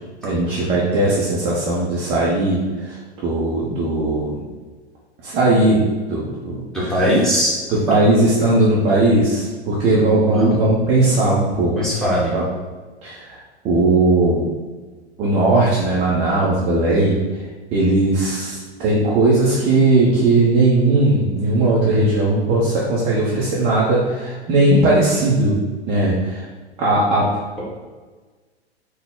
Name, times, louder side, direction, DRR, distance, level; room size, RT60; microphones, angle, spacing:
voice 1, 0.2-4.4 5.2-7.0 7.7-11.8 12.3-12.4 13.0-13.4 13.6-14.4 15.2-17.4 17.7-25.6 25.9-26.4 26.8-27.3, right 2 dB, 20° right, -6 dB, 0.4 m, -18 dB
voice 2, 6.7-7.5 10.3-10.6 11.8-12.3, equal, ahead, -8 dB, 0.9 m, -19 dB
3.7 x 2.0 x 3.6 m, 1.3 s
figure-of-eight pair, 100°, 34 cm